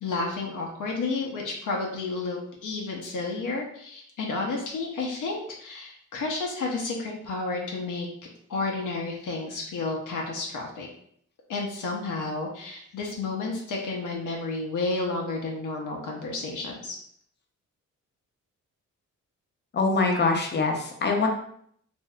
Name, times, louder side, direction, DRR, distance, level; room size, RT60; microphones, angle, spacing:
voice 1, 0.0-8.1 8.5-10.9 11.5-17.0, left 3 dB, 80° left, -1 dB, 0.6 m, -31 dB
voice 2, 19.7-21.3, left 3 dB, 35° left, 2 dB, 0.6 m, -24 dB
3.4 x 2.5 x 2.2 m, 0.66 s
wide cardioid pair, 140°, 31 cm